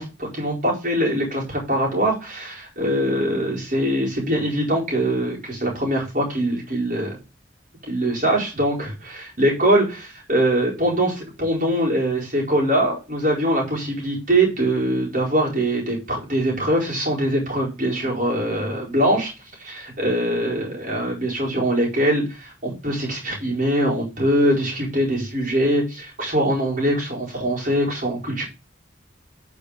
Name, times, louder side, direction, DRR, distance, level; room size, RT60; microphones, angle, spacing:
voice 1, 0.0-7.2 7.9-19.3 19.6-28.4, right 1 dB, 45° right, -3 dB, 4.5 m, -22 dB
9.1 x 5.2 x 4.9 m, 0.29 s
head